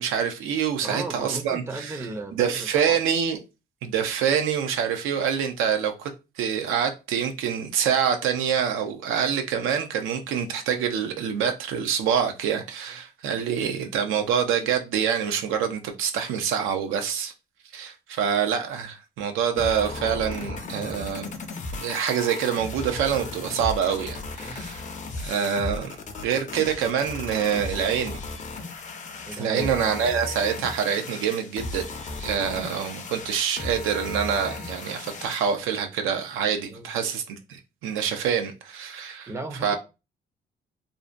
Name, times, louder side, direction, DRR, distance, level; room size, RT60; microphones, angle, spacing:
voice 1, 0.0-2.0 2.3-3.4 3.8-6.1 6.4-17.3 17.7-21.3 21.7-24.8 25.2-28.2 29.3-31.8 32.2-39.3 39.6-39.8, right 8 dB, 90° right, 0.5 m, -26 dB
voice 2, 0.8-3.0 24.4-24.6 29.3-30.0 36.7-36.9 39.3-39.8, right 2 dB, 15° right, 0.4 m, -35 dB
sound 1, 19.6-35.6, left 3 dB, 40° left, 0.5 m, -36 dB
2.5 x 2.1 x 2.4 m
cardioid pair, 90°, 20 cm